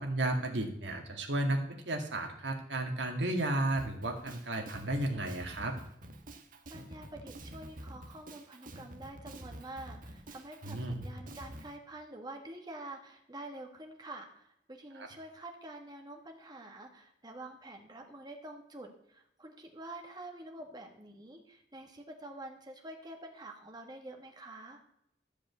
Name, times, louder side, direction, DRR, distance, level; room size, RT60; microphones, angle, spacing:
voice 1, 0.0-5.7 10.6-11.0 14.9-15.1, right 1 dB, 80° right, 3 dB, 2.1 m, -33 dB
Drum kit, 3.8-11.7, right 1 dB, 50° right, 1.4 m, -48 dB
voice 2, 6.7-24.8, right 2 dB, 25° right, 2 dB, 1.5 m, -47 dB
13.0 x 5.2 x 8.2 m, 0.75 s
head